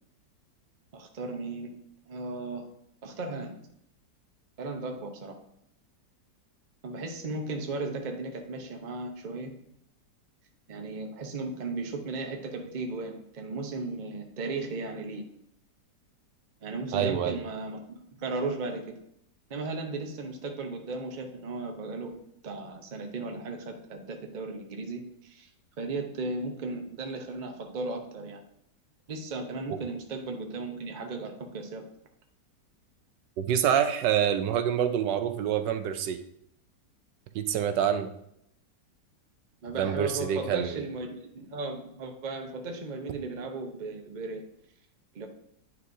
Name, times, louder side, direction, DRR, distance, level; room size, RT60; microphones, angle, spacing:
voice 1, 0.9-1.7 2.1-2.6 3.0-3.5 4.6-5.4 6.8-9.5 10.7-15.2 16.6-17.8 18.1-19.0 19.5-22.1 22.4-25.5 25.8-28.4 29.1-31.8 39.6-44.4 45.1-45.3, right 3 dB, 40° right, 4 dB, 0.7 m, -36 dB
voice 2, 16.9-17.4 29.7-29.8 33.4-36.2 37.3-38.1 39.8-40.8, right 9 dB, 80° right, 9 dB, 1.2 m, -26 dB
9.5 x 5.5 x 2.7 m, 0.74 s
omnidirectional pair, 1.9 m